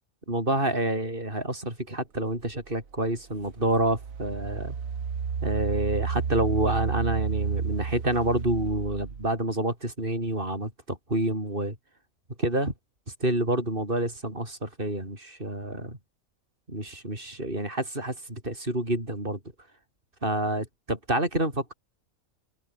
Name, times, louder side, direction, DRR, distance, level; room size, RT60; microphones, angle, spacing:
voice 1, 0.3-4.7 5.4-11.8 12.4-12.7 13.2-16.0 16.7-19.4 20.2-21.7, right 1 dB, 40° right, 7.6 m, -28 dB
Engine, 2.7-2.8 3.4-9.3, right 6 dB, 70° right, 2.0 m, -31 dB
omnidirectional pair, 1.5 m